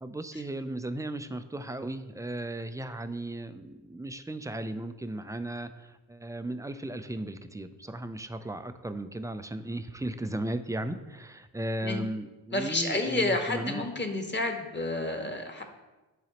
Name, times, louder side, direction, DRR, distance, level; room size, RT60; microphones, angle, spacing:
voice 1, 0.0-13.8, right 1 dB, 5° right, 10 dB, 0.5 m, -36 dB
voice 2, 12.5-15.6, left 2 dB, 25° left, 4 dB, 1.4 m, -30 dB
10.5 x 3.9 x 3.0 m, 1.1 s
hypercardioid pair, 40°, 45 cm